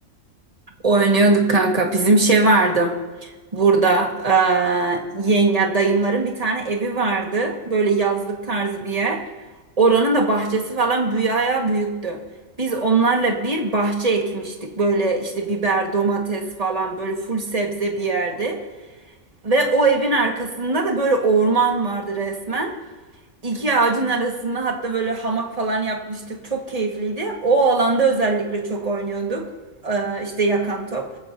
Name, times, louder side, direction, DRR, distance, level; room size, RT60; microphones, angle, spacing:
voice 1, 0.8-2.9 3.2-9.2 9.8-12.2 12.6-18.6 19.4-22.7 23.4-29.5 29.8-31.1, right 3 dB, 30° right, 1 dB, 1.9 m, -21 dB
24.5 x 15.0 x 2.8 m, 1.3 s
omnidirectional pair, 1.3 m